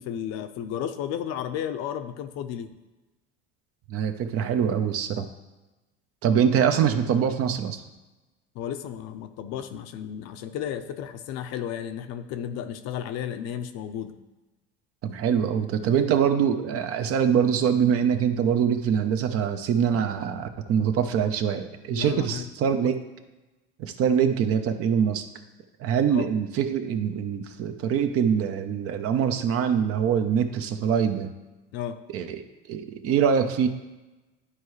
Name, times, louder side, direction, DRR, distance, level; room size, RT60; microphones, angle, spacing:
voice 1, 0.0-2.7 8.5-14.2 21.9-22.9 26.1-26.3 31.7-32.0, left 9 dB, 60° left, 8 dB, 0.7 m, -33 dB
voice 2, 3.9-5.3 6.2-7.8 15.0-23.0 23.8-25.2 25.8-31.3 32.1-32.4 32.7-33.7, right 8 dB, 50° right, 7 dB, 0.8 m, -24 dB
11.5 x 4.6 x 3.2 m, 1.1 s
supercardioid pair, 90°, 29 cm